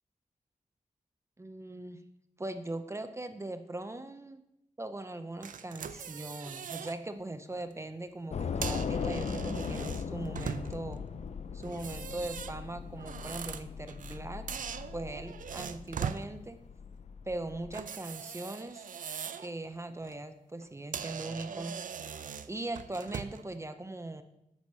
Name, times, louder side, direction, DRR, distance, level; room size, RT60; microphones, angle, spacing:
voice 1, 1.4-2.0 2.4-4.4 4.8-11.0 11.5-14.5 14.9-16.6 17.2-18.9 19.3-21.7 22.5-24.2, right 2 dB, 20° right, 8 dB, 0.5 m, -40 dB
sound 1, 5.4-7.0 7.4-7.6 8.4-10.9 11.6-14.2 14.5-16.3 17.7-19.5 19.9-20.2 20.6-20.7 20.9-23.5, right 7 dB, 80° right, 0.4 m, -41 dB
Train / Subway metro underground, 8.3-17.7, left 6 dB, 55° left, 0.4 m, -39 dB
8.3 x 6.4 x 5.4 m, 0.82 s
wide cardioid pair, 145°, 14 cm